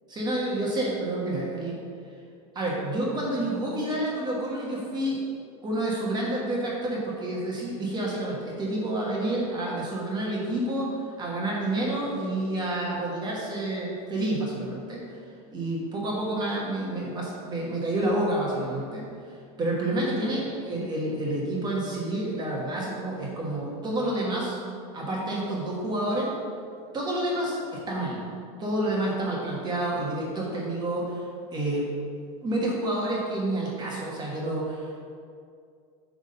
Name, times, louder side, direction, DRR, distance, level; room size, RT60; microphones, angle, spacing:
voice 1, 0.1-1.8 2.5-5.2 5.6-15.2 15.5-19.1 19.6-24.6 24.9-26.3 26.9-28.2 28.6-31.8 32.4-35.0, right 1 dB, 20° right, -4 dB, 1.3 m, -29 dB
8.0 x 3.6 x 5.5 m, 2.3 s
supercardioid pair, 145°, 20 cm